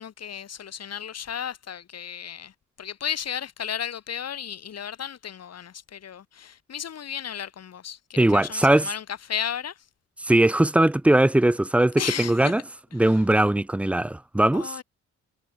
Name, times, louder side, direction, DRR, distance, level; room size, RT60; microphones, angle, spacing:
voice 1, 0.0-9.9 12.0-12.6 13.0-13.2 14.5-14.8, left 8 dB, 55° left, 5.7 m, -34 dB
voice 2, 8.2-8.9 10.2-12.6 12.9-14.7, right 1 dB, 5° right, 0.4 m, -20 dB
cardioid pair, 90°, 30 cm